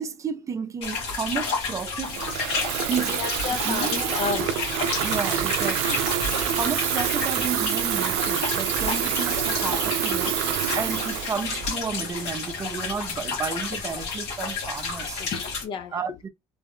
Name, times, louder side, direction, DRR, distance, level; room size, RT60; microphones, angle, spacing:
voice 1, 0.0-2.2 2.9-3.2 3.5-4.0 5.0-6.1 6.6-10.4 10.7-15.2 15.9-16.3, right 6 dB, 30° right, 0.5 m, -32 dB
sound 1, 0.8-15.6, left 4 dB, 80° left, 1.6 m, -31 dB
Water tap faucet / Fill (with liquid), 2.0-12.3, right 11 dB, 85° right, 0.5 m, -27 dB
voice 2, 3.1-4.6 15.2-15.9, left 6 dB, 55° left, 0.5 m, -31 dB
3.4 x 2.2 x 3.5 m
cardioid pair, 110°, 10 cm